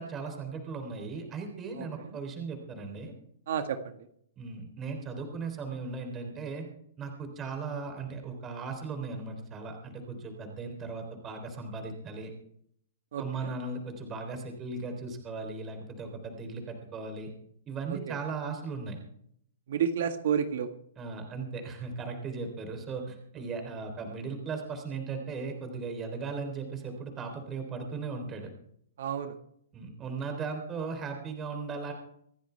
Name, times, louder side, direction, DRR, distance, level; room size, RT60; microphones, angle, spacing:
voice 1, 0.0-3.1 4.4-6.7 7.0-12.3 13.2-17.3 17.7-19.0 21.0-28.5 29.7-31.9, right 4 dB, 20° right, 4 dB, 3.6 m, -37 dB
voice 2, 1.8-2.2 3.5-3.8 13.1-13.5 18.1-18.2 19.7-20.7 29.0-29.3, right 8 dB, 65° right, 7 dB, 1.7 m, -30 dB
26.0 x 10.0 x 3.4 m, 0.69 s
hypercardioid pair, 145°, 0 cm